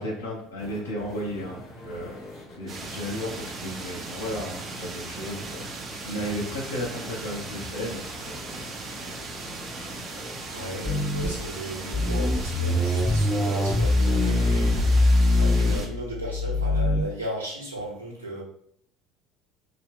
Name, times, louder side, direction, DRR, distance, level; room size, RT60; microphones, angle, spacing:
voice 1, 0.0-2.1 2.6-5.6 6.0-8.4, equal, 75° left, -2 dB, 1.0 m, -34 dB
sound 1, 0.6-15.0, left 1 dB, 60° left, 1.3 m, -44 dB
sound 2, 2.7-15.9, right 3 dB, 45° right, 0.7 m, -38 dB
voice 2, 6.1-6.4 10.5-18.4, equal, 85° right, -3 dB, 1.0 m, -36 dB
sound 3, 10.9-11.5 11.9-17.0, left 2 dB, 5° left, 0.7 m, -23 dB
3.9 x 2.3 x 3.5 m, 0.66 s
figure-of-eight pair, 60°, 0 cm